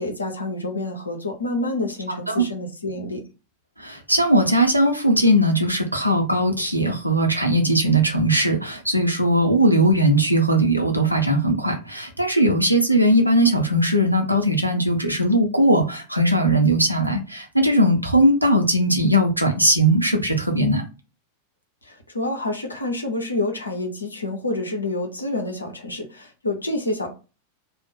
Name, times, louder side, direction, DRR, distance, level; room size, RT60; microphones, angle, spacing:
voice 1, 0.0-3.2 21.8-27.1, left 2 dB, 80° left, 0.7 m, -28 dB
voice 2, 2.1-2.4 3.8-20.8, right 1 dB, 90° right, 0.6 m, -19 dB
2.5 x 2.0 x 3.7 m
figure-of-eight pair, 90°, 0 cm